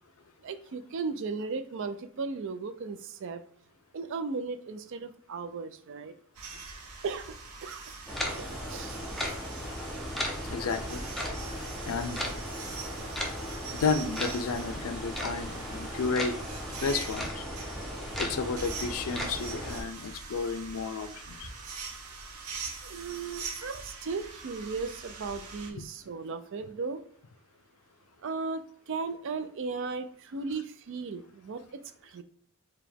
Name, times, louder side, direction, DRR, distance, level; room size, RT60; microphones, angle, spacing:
voice 1, 0.4-3.4 3.9-6.1 7.0-7.8 8.4-9.0 22.8-27.0 28.2-32.2, right 4 dB, 60° right, 10 dB, 0.4 m, -36 dB
sound 1, 6.3-25.7, right 4 dB, 85° right, 0.7 m, -43 dB
sound 2, 8.1-19.8, equal, ahead, 0.5 m, -36 dB
voice 2, 10.5-11.0 11.9-12.3 13.8-16.4 16.7-17.4 18.2-21.5 25.7-25.8, left 4 dB, 80° left, 10 dB, 0.5 m, -32 dB
4.8 x 2.2 x 3.4 m, 0.63 s
head